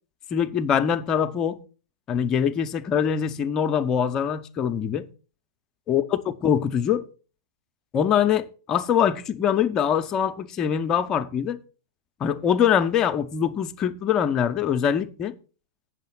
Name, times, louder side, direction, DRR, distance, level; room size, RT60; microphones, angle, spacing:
voice 1, 0.3-1.6 2.1-5.0 5.9-7.0 7.9-11.6 12.2-15.3, left 8 dB, 30° left, 0.7 m, -23 dB
8.5 x 6.5 x 6.0 m
figure-of-eight pair, 95°, 2 cm